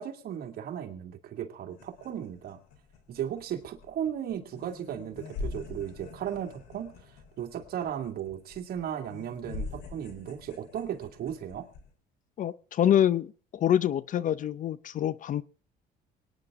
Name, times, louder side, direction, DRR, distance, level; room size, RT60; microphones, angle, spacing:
voice 1, 0.0-2.6 3.1-6.9 7.4-11.7, right 9 dB, 65° right, 2.2 m, -36 dB
sound 1, 1.7-11.9, left 4 dB, 90° left, 3.8 m, -44 dB
voice 2, 12.4-15.4, left 10 dB, 50° left, 0.6 m, -26 dB
24.0 x 9.6 x 3.6 m
cardioid pair, 110°, 17 cm